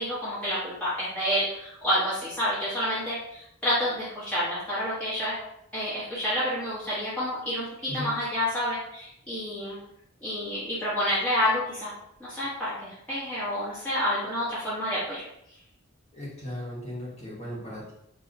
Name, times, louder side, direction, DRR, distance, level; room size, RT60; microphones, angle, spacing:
voice 1, 0.0-5.4 5.7-9.8 10.2-11.9 12.2-15.2, equal, 5° left, -11 dB, 0.9 m, -29 dB
voice 2, 16.1-17.9, left 1 dB, 30° left, -5 dB, 1.1 m, -37 dB
3.8 x 2.7 x 2.6 m, 0.78 s
head